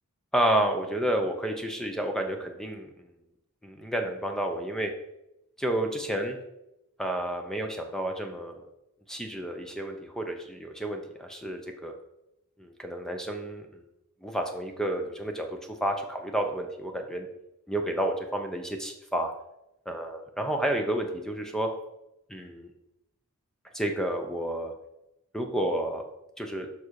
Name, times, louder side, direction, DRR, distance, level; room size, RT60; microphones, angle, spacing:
voice 1, 0.3-3.1 3.6-4.9 5.6-6.4 7.0-8.6 9.1-11.9 12.6-13.8 14.2-17.3 17.7-19.3 19.9-21.7 22.3-22.7 23.7-24.7 25.3-26.0 26.4-26.7, right 1 dB, ahead, 4 dB, 0.8 m, -30 dB
7.2 x 5.6 x 4.8 m, 0.87 s
head